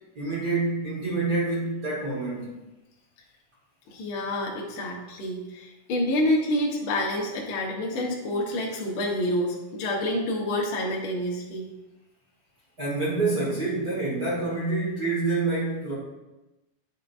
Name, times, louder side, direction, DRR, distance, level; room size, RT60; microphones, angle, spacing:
voice 1, 0.1-2.5 12.8-15.9, right 3 dB, 65° right, -7 dB, 0.9 m, -27 dB
voice 2, 3.9-11.7, left 1 dB, 75° left, -3 dB, 1.2 m, -28 dB
9.5 x 6.4 x 2.6 m, 1.0 s
omnidirectional pair, 4.4 m